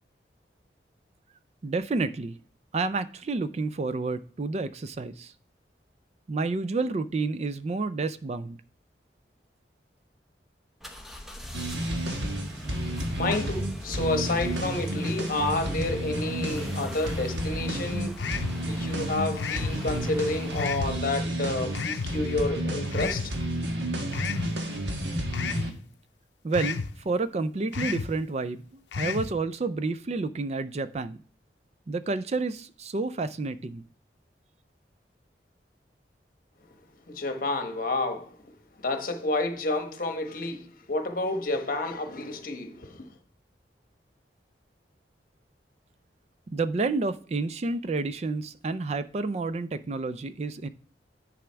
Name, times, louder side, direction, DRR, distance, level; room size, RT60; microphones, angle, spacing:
voice 1, 1.6-2.4 2.7-5.3 6.3-8.6 26.4-31.2 31.9-33.8 46.5-50.7, right 3 dB, 40° right, 0.4 m, -30 dB
sound 1, 10.8-21.0, equal, ahead, 0.8 m, -43 dB
sound 2, 11.5-25.7, equal, 90° right, 1.3 m, -31 dB
voice 2, 13.2-18.3 18.7-23.4 37.1-38.4 38.8-43.1, left 2 dB, 50° left, 1.1 m, -30 dB
sound 3, 18.2-18.6 19.4-19.8 20.6-20.9 21.8-22.1 22.9-23.3 24.1-24.5 25.3-25.7 26.5-26.9 27.7-28.1 28.9-29.3, left 5 dB, 90° left, 0.5 m, -31 dB
10.0 x 4.9 x 3.4 m
head